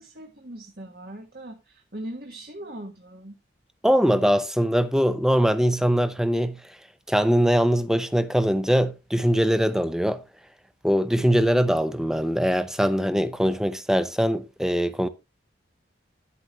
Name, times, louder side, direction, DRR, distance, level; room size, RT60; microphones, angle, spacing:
voice 1, 0.0-3.4, right 1 dB, 50° right, 1.5 m, -40 dB
voice 2, 3.8-6.6 7.1-10.2 10.8-15.1, equal, 5° right, 0.7 m, -22 dB
10.5 x 8.3 x 3.1 m
head